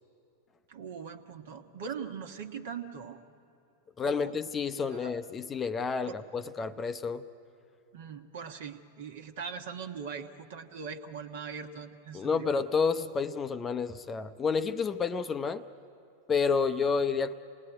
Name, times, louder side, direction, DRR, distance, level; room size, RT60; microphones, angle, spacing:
voice 1, 0.7-3.2 4.0-4.3 4.9-5.1 6.0-6.2 7.9-12.5, right 6 dB, 55° right, 4 dB, 1.4 m, -41 dB
voice 2, 4.0-7.2 12.1-15.6 16.3-17.3, left 5 dB, 20° left, 12 dB, 0.6 m, -30 dB
27.5 x 19.5 x 9.2 m, 2.7 s
figure-of-eight pair, 90°, 0 cm